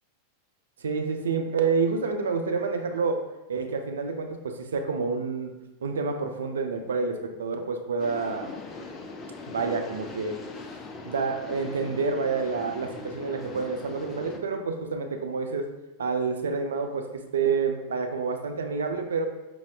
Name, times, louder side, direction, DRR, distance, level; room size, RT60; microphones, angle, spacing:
voice 1, 0.8-5.5 5.8-8.5 9.5-10.4 11.0-15.7 16.0-19.2, right 4 dB, 65° right, 6 dB, 0.3 m, -28 dB
sound 1, 8.0-14.4, left 4 dB, 25° left, 0.3 m, -41 dB
5.1 x 2.0 x 2.2 m, 1.0 s
figure-of-eight pair, 90°, 0 cm